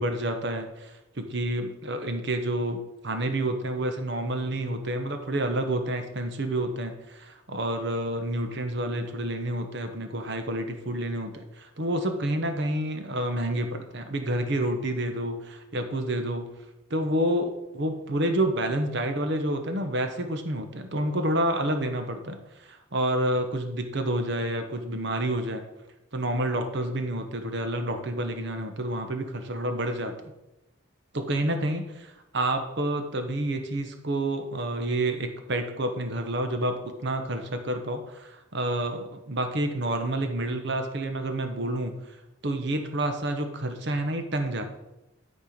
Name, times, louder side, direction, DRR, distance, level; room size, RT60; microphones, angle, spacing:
voice 1, 0.0-16.5 16.9-25.6 26.1-30.3 31.1-41.9 42.4-44.6, right 1 dB, 55° right, 6 dB, 1.0 m, -29 dB
11.5 x 4.5 x 5.1 m, 0.95 s
head